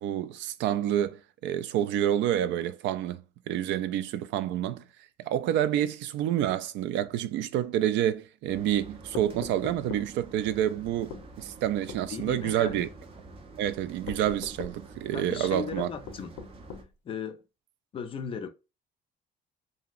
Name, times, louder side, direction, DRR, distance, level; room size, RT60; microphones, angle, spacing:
voice 1, 0.0-4.8 5.2-12.9 13.6-15.9, right 11 dB, 90° right, 0.4 m, -28 dB
sound 1, 8.5-16.8, right 3 dB, 30° right, 0.5 m, -48 dB
sound 2, 9.1-10.1 11.1-11.3 11.9-12.1 12.7-12.8 14.1-14.8 16.1-16.9, left 6 dB, 90° left, 0.5 m, -41 dB
voice 2, 12.1-12.9 15.1-16.3 17.1-17.4 17.9-18.5, left 6 dB, 30° left, 0.4 m, -36 dB
3.0 x 2.7 x 2.3 m
cardioid pair, 175°, 18 cm